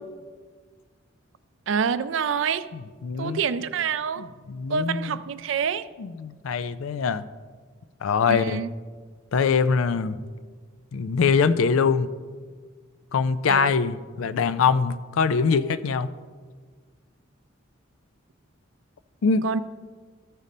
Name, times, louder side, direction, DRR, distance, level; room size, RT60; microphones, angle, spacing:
voice 1, 1.7-2.7 3.2-4.3 4.7-5.9 8.3-8.7 13.5-13.7 19.4-19.6, right 6 dB, 65° right, 14 dB, 0.4 m, -26 dB
voice 2, 2.7-3.4 4.2-5.2 6.0-7.2 8.0-8.6 9.3-10.2 10.9-12.1 13.1-16.1 19.2-19.5, left 5 dB, 80° left, 14 dB, 0.4 m, -23 dB
14.0 x 5.2 x 4.1 m, 1.5 s
head